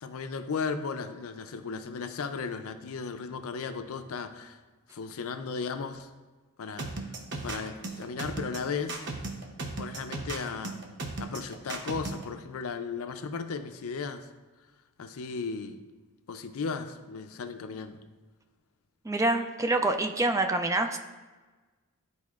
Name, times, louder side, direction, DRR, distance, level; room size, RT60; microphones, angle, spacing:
voice 1, 0.0-4.6 4.9-6.1 6.6-6.9 7.4-9.0 9.8-10.8 11.2-14.3 15.0-15.8 16.3-18.0, left 5 dB, 70° left, 9 dB, 0.5 m, -35 dB
sound 1, 6.8-12.2, right 3 dB, 55° right, 0.8 m, -36 dB
voice 2, 19.0-21.0, right 2 dB, 15° right, 6 dB, 0.4 m, -26 dB
11.0 x 4.1 x 2.4 m, 1.3 s
head